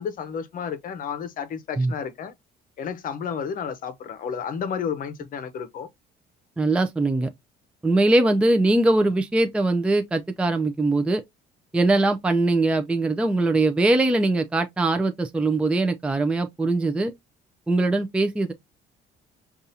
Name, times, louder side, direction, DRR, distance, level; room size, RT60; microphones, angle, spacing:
voice 1, 0.0-2.3 2.8-5.9, left 7 dB, 55° left, 0.7 m, -31 dB
voice 2, 6.6-7.3 7.8-11.2 11.7-17.1 17.7-18.5, right 2 dB, 5° right, 0.4 m, -21 dB
5.2 x 2.4 x 2.7 m
cardioid pair, 110°, 17 cm